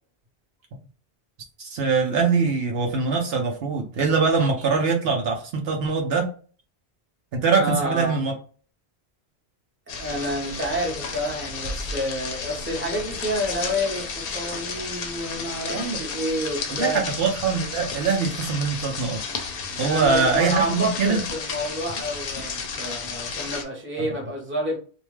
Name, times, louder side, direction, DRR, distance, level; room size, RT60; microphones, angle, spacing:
voice 1, 1.6-6.3 7.3-8.3 15.7-16.0 16.7-19.2 19.8-21.2, right 4 dB, 70° right, 0.8 m, -23 dB
voice 2, 7.6-8.3 9.9-17.0 19.8-24.8, equal, 10° right, 0.8 m, -29 dB
sound 1, 9.9-23.6, left 5 dB, 65° left, 0.7 m, -32 dB
2.5 x 2.2 x 3.1 m
omnidirectional pair, 1.1 m